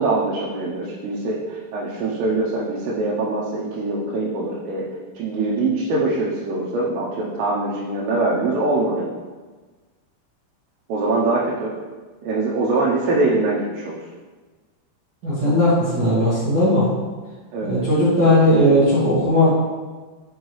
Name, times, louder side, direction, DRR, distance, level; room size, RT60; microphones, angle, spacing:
voice 1, 0.0-9.1 10.9-11.7 12.2-14.0 17.5-17.8, right 2 dB, 90° right, -5 dB, 2.9 m, -23 dB
voice 2, 15.2-16.8 17.7-19.5, left 1 dB, 55° right, -11 dB, 1.2 m, -17 dB
6.4 x 5.2 x 3.1 m, 1.4 s
omnidirectional pair, 4.8 m